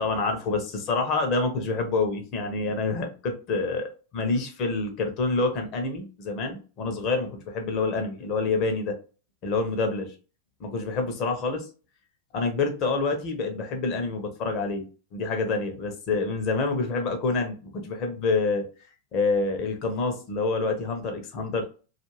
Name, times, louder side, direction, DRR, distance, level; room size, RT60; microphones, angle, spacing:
voice 1, 0.0-8.9 9.4-10.1 10.6-11.7 12.3-14.8 15.1-18.6 19.1-21.7, left 3 dB, 40° left, 5 dB, 0.7 m, -27 dB
2.4 x 2.4 x 3.0 m, 0.34 s
figure-of-eight pair, 90°, 0 cm